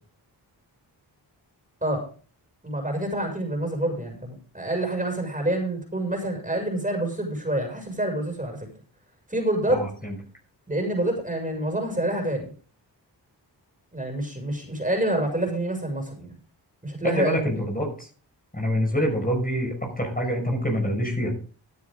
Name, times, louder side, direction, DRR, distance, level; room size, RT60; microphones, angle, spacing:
voice 1, 2.6-8.6 9.3-9.8 10.7-12.5 13.9-16.3 16.8-17.5, right 1 dB, 15° right, 3 dB, 6.9 m, -27 dB
voice 2, 9.7-10.2 17.0-18.1 18.5-21.4, equal, 20° left, 1 dB, 5.7 m, -26 dB
16.0 x 9.8 x 3.9 m, 0.40 s
cardioid pair, 45°, 45 cm